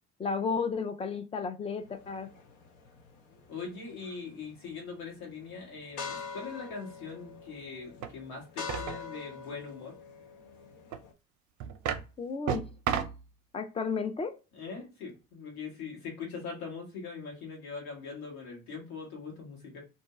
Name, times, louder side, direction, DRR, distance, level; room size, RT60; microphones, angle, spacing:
voice 1, 0.2-2.3 12.2-12.7 13.5-14.4, left 5 dB, 15° left, 0.3 m, -33 dB
sound 1, 1.8-11.1, left 5 dB, 65° left, 0.8 m, -45 dB
voice 2, 3.5-10.0 14.5-19.8, left 5 dB, 80° left, 1.4 m, -41 dB
sound 2, 8.0-8.1 8.7-9.0 10.9-11.0 11.6-12.1 12.5-13.2, right 8 dB, 45° right, 0.5 m, -32 dB
2.6 x 2.2 x 2.9 m
hypercardioid pair, 60°, 42 cm